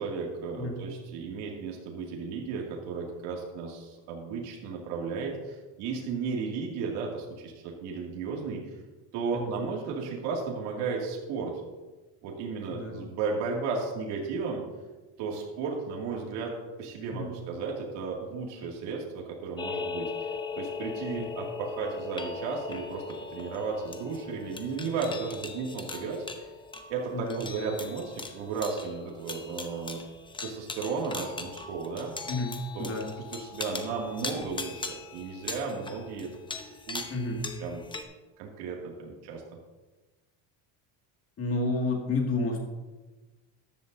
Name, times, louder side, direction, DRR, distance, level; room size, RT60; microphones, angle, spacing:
voice 1, 0.0-8.6 9.1-11.6 12.2-14.6 15.2-20.3 20.6-26.2 26.9-30.0 30.4-32.1 32.7-32.9 33.2-36.3 36.6-37.0 37.4-37.8 38.4-39.4, right 5 dB, 70° right, -2 dB, 2.4 m, -34 dB
sound 1, 19.6-38.0, left 4 dB, 10° left, 0.7 m, -39 dB
voice 2, 27.1-27.4 32.3-33.1 37.1-37.4 41.4-42.6, left 2 dB, 35° left, 1 dB, 2.1 m, -30 dB
14.0 x 10.5 x 2.7 m, 1.2 s
cardioid pair, 140°, 42 cm